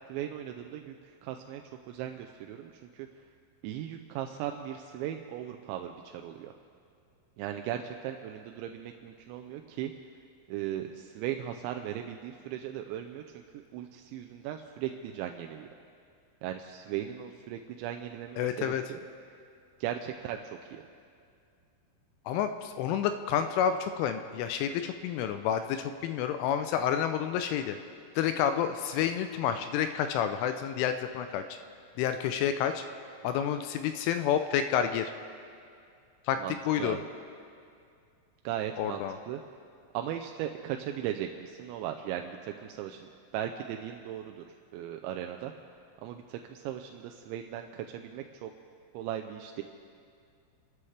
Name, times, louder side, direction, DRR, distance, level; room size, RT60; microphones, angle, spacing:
voice 1, 0.1-0.9 1.2-1.6 1.9-3.1 3.6-6.5 7.4-9.9 10.5-13.2 13.5-15.7 16.4-19.0 19.8-20.8 36.4-37.1 38.4-39.4 39.9-44.4 44.7-45.5 46.0-48.5 48.9-49.6, right 11 dB, 85° right, 5 dB, 2.6 m, -37 dB
voice 2, 18.4-18.8 22.3-27.8 28.2-31.4 32.0-32.8 33.2-35.1 36.3-36.4 36.7-37.0 38.8-39.2, left 9 dB, 80° left, 8 dB, 2.9 m, -29 dB
29.5 x 13.0 x 3.3 m, 2.3 s
omnidirectional pair, 5.8 m